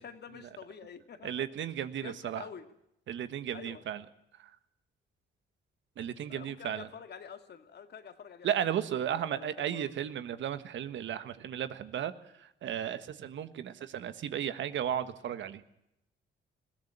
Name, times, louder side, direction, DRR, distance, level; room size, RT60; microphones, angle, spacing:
voice 1, 0.0-1.5 2.0-2.7 3.5-3.9 6.3-8.5 9.1-9.9, left 7 dB, 55° left, 8 dB, 2.2 m, -47 dB
voice 2, 1.2-2.4 3.1-4.0 4.4-4.5 6.0-6.9 8.4-12.1 12.4-15.6, right 10 dB, 70° right, 12 dB, 1.4 m, -34 dB
21.0 x 16.5 x 8.8 m, 0.81 s
cardioid pair, 90°, 20 cm